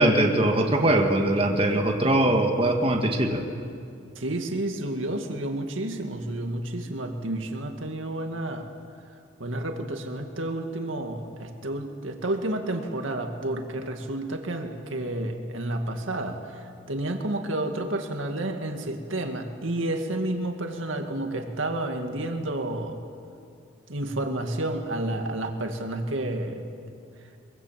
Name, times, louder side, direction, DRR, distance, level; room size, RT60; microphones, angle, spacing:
voice 1, 0.0-3.4, right 1 dB, 30° right, 2 dB, 1.8 m, -21 dB
voice 2, 4.2-8.7 9.4-23.0 23.9-26.6, right 1 dB, 80° right, 4 dB, 2.1 m, -30 dB
23.5 x 22.5 x 7.5 m, 2.4 s
head